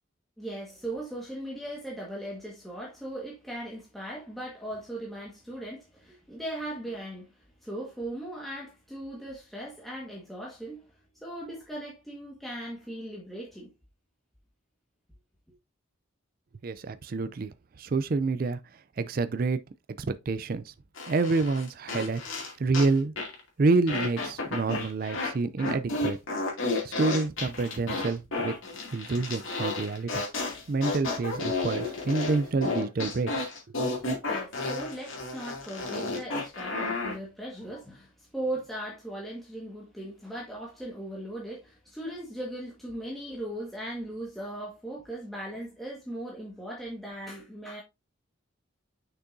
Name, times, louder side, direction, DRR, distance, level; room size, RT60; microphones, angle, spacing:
voice 1, 0.4-13.7 33.9-47.8, right 1 dB, ahead, 1.5 m, -38 dB
voice 2, 16.6-18.6 19.0-19.6 20.0-20.7 21.1-23.1 23.6-26.2 26.8-28.5 28.9-30.2 30.7-33.5, right 3 dB, 45° right, 0.4 m, -28 dB
sound 1, 21.0-22.9 23.2-23.4 23.9-25.3 25.6-37.2, left 3 dB, 80° left, 2.5 m, -32 dB
6.6 x 6.0 x 2.7 m
head